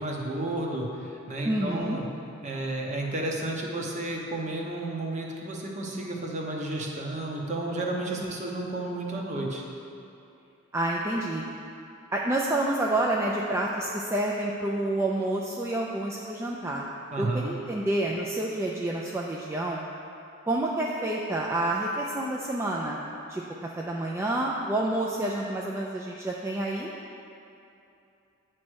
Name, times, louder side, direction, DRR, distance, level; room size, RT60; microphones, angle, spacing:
voice 1, 0.0-2.1 2.4-9.6 17.1-17.5, right 2 dB, 35° right, -1 dB, 0.8 m, -32 dB
voice 2, 1.4-2.0 8.2-8.3 10.7-11.4 12.1-16.9 17.2-19.8 20.5-23.0 23.3-23.4 23.8-26.9, right 1 dB, 15° right, -3 dB, 0.3 m, -28 dB
8.7 x 3.1 x 6.2 m, 2.7 s
head